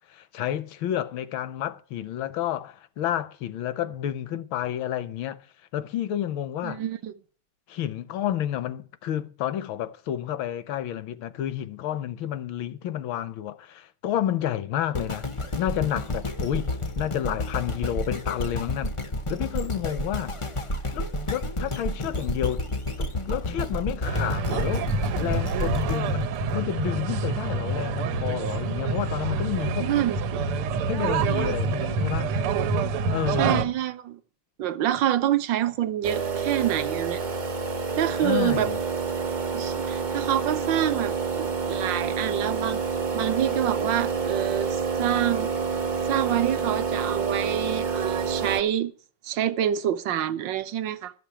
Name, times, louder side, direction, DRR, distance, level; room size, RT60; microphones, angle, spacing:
voice 1, 0.1-5.4 5.7-6.8 7.7-15.3 15.6-19.0 19.3-20.3 20.9-22.7 23.0-24.9 25.2-29.9 30.9-32.3 33.1-33.7 38.2-38.8, left 11 dB, 70° left, 1.5 m, -30 dB
voice 2, 6.6-7.1 29.8-30.4 33.4-34.2 34.6-37.2 38.0-38.7 39.5-42.8 43.1-45.5 46.1-48.9 49.2-51.1, right 11 dB, 65° right, 1.3 m, -27 dB
sound 1, 14.9-27.1 27.7-27.8, left 1 dB, 55° left, 0.3 m, -31 dB
sound 2, 24.1-33.7, right 4 dB, 85° right, 1.8 m, -27 dB
sound 3, 36.0-48.6, right 5 dB, 40° right, 0.6 m, -28 dB
12.0 x 7.1 x 8.6 m
omnidirectional pair, 2.4 m